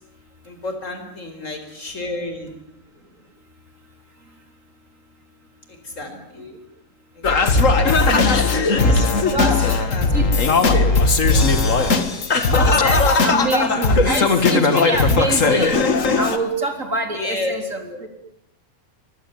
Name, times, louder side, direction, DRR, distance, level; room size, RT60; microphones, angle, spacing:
voice 1, 0.4-2.5 5.8-6.4 7.1-7.9 8.6-11.1 12.6-13.0 17.1-18.0, left 2 dB, 20° left, 6 dB, 4.6 m, -30 dB
voice 2, 6.1-6.6 7.7-8.2 9.3-9.8 10.1-10.3 13.2-15.8 16.1-18.1, right 2 dB, 20° right, 5 dB, 3.7 m, -26 dB
Singing, 7.2-16.4, left 3 dB, 45° left, 1.0 m, -17 dB
24.0 x 19.0 x 9.3 m, 0.76 s
omnidirectional pair, 4.2 m